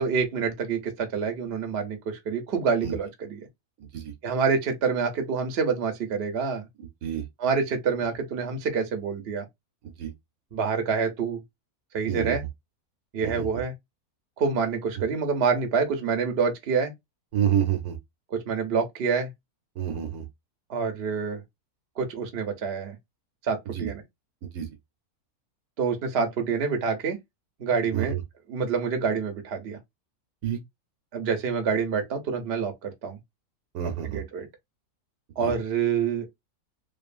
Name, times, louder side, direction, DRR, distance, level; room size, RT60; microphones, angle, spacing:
voice 1, 0.0-3.4 4.2-6.7 7.4-9.4 10.5-11.4 11.9-12.4 13.1-13.7 14.4-16.9 18.3-19.3 20.7-21.4 22.0-23.0 23.4-24.0 25.8-27.2 27.6-28.1 28.5-29.8 31.1-33.2 34.1-34.5 35.4-36.3, right 5 dB, 50° right, 0.8 m, -27 dB
voice 2, 3.8-4.1 6.8-7.3 9.8-10.1 12.1-12.4 13.2-13.5 17.3-18.0 19.8-20.3 23.7-23.9 24.4-24.7 27.9-28.2 30.4-30.6 33.7-34.2 35.4-35.5, right 9 dB, 75° right, 1.1 m, -28 dB
2.7 x 2.4 x 2.4 m
omnidirectional pair, 1.6 m